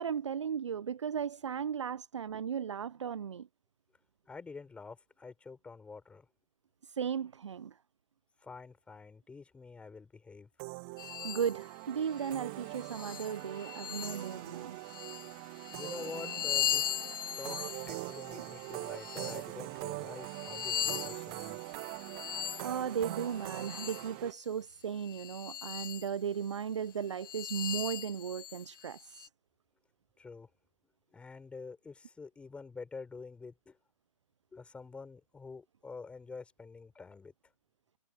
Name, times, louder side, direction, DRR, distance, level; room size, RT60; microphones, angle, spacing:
voice 1, 0.0-3.5 6.8-7.8 11.1-14.8 22.3-29.3, right 7 dB, 45° right, 0.8 m, -36 dB
voice 2, 4.3-6.3 8.4-10.5 15.7-16.9 17.4-21.8 30.2-30.5 31.1-33.8 34.5-37.3, left 4 dB, 5° left, 6.5 m, -47 dB
sound 1, 10.6-24.3, right 33 dB, 20° right, 1.2 m, -43 dB
sound 2, 11.0-11.6 12.2-12.3 12.8-14.4 14.8-19.5 20.1-24.1 25.0-26.1 26.5-26.6 27.2-29.3, left 10 dB, 35° left, 0.9 m, -39 dB
figure-of-eight pair, 135°, 20 cm